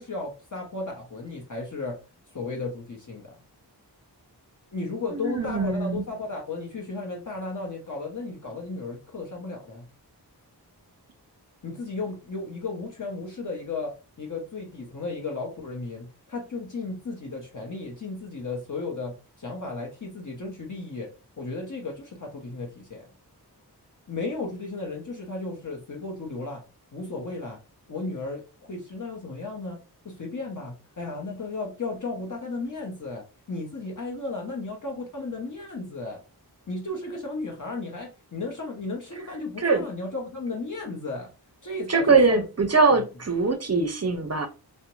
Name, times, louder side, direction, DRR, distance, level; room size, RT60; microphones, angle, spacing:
voice 1, 0.0-2.0 2.3-3.4 4.7-9.9 11.6-13.9 14.2-21.1 21.4-23.0 24.1-26.6 26.9-27.6 27.9-29.8 30.0-36.2 36.7-41.3 41.6-42.4 42.9-43.0, left 3 dB, 50° left, 0.7 m, -34 dB
voice 2, 5.1-6.0 39.6-39.9 41.9-44.5, right 4 dB, 40° right, 0.5 m, -22 dB
2.5 x 2.1 x 2.9 m
wide cardioid pair, 60°, 40 cm